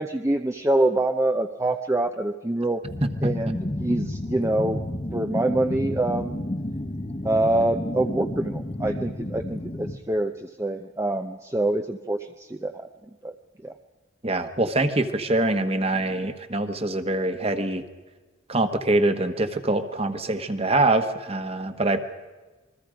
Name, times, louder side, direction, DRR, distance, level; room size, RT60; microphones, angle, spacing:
voice 1, 0.0-2.8 3.2-4.8 5.1-6.4 7.2-12.9 13.2-13.3 13.6-13.7, right 1 dB, 15° right, 6 dB, 0.6 m, -25 dB
sound 1, 2.8-10.0, left 1 dB, 30° left, 1.2 m, -31 dB
voice 2, 14.2-17.8 18.5-22.0, right 2 dB, 30° right, 9 dB, 1.3 m, -24 dB
28.0 x 22.0 x 5.1 m, 1.3 s
head